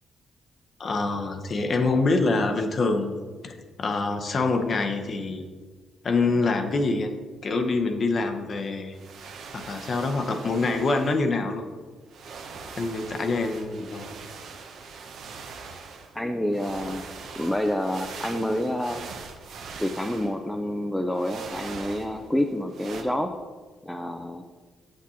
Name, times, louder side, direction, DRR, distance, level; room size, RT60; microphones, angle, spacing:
voice 1, 0.8-3.1 3.4-5.4 6.0-7.1 7.4-9.0 9.5-11.6 12.8-14.1, left 3 dB, 45° left, 6 dB, 0.7 m, -25 dB
sound 1, 8.9-11.2 12.1-16.2 16.5-20.6 21.1-22.4 22.7-23.0, right 5 dB, 70° right, 0.7 m, -41 dB
voice 2, 16.1-17.0 17.4-19.1 19.8-23.3 23.8-24.4, left 1 dB, 5° left, 4 dB, 0.4 m, -28 dB
7.5 x 6.2 x 2.8 m, 1.5 s
cardioid pair, 90°, 0 cm